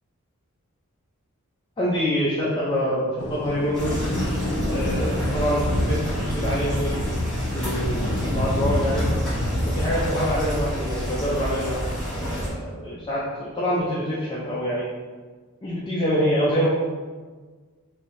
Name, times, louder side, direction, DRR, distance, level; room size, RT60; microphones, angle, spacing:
voice 1, 1.8-4.1 4.7-7.0 7.5-9.1 9.7-11.8 12.1-14.9 15.6-16.7, equal, 20° left, -7 dB, 0.4 m, -26 dB
sound 1, 3.2-10.2, left 1 dB, 75° left, 0.5 m, -28 dB
sound 2, 3.7-12.5, equal, 5° left, 1.1 m, -28 dB
3.1 x 2.6 x 2.9 m, 1.4 s
head